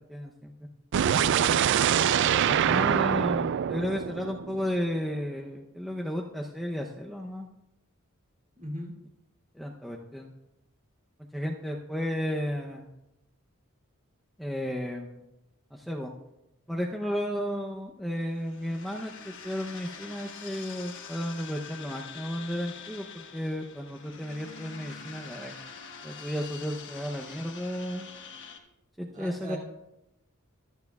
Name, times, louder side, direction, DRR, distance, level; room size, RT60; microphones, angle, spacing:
voice 1, 0.1-0.5 2.5-7.5 9.5-10.3 11.3-12.9 14.4-15.2 15.7-16.1 16.7-25.5 26.0-28.1 29.0-29.6, equal, ahead, -1 dB, 0.7 m, -33 dB
sound 1, 0.9-4.9, right 8 dB, 55° right, 0.3 m, -25 dB
voice 2, 8.6-8.9 29.1-29.6, right 1 dB, 40° right, -2 dB, 2.8 m, -38 dB
sound 2, 18.3-28.6, left 6 dB, 60° left, 1.2 m, -45 dB
23.5 x 9.4 x 2.3 m, 0.93 s
head